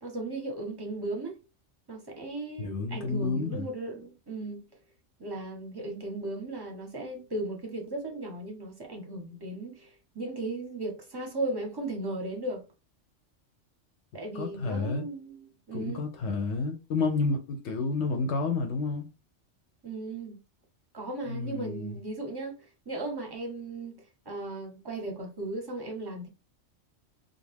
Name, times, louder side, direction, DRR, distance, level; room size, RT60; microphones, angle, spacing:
voice 1, 0.0-1.4 1.9-4.6 5.2-12.6 14.1-16.0 19.8-20.3 20.9-22.5 22.9-24.0 24.3-26.3, right 2 dB, 25° right, 0.6 m, -36 dB
voice 2, 2.6-3.7 14.3-15.1 15.7-19.1 21.3-22.0, left 3 dB, 70° left, 0.8 m, -30 dB
2.4 x 2.2 x 3.2 m
omnidirectional pair, 1.3 m